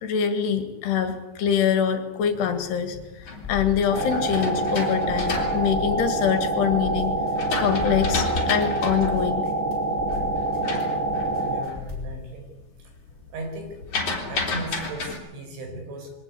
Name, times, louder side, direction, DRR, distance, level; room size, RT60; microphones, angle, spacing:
voice 1, 0.0-7.1 7.6-9.4, left 8 dB, 70° left, 8 dB, 3.9 m, -24 dB
sound 1, 2.9-6.6 7.1-11.9 12.2-12.6 12.9-15.1, left 3 dB, 35° left, 4.3 m, -32 dB
sound 2, 3.4-12.2, left 5 dB, 10° left, 5.9 m, -37 dB
sound 3, 3.9-11.6, right 2 dB, 65° right, 3.6 m, -26 dB
voice 2, 11.4-12.5 13.3-13.8 14.3-16.1, right 2 dB, 90° right, 4 dB, 7.3 m, -36 dB
23.0 x 18.5 x 8.4 m, 1.1 s
omnidirectional pair, 5.2 m